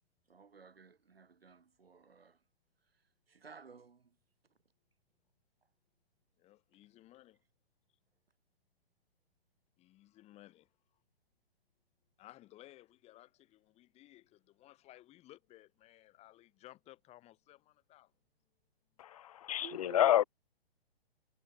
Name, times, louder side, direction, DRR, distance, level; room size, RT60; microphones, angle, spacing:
voice 1, 0.3-2.4 2.9-3.0 3.3-4.2 19.6-20.3, right 5 dB, 70° right, 3.4 m, -54 dB
voice 2, 6.4-7.4 9.8-10.7 12.2-18.1, left 15 dB, 20° left, 5.1 m, -58 dB
voice 3, 19.0-20.2, left 11 dB, 35° left, 0.7 m, -29 dB
figure-of-eight pair, 130°, 31 cm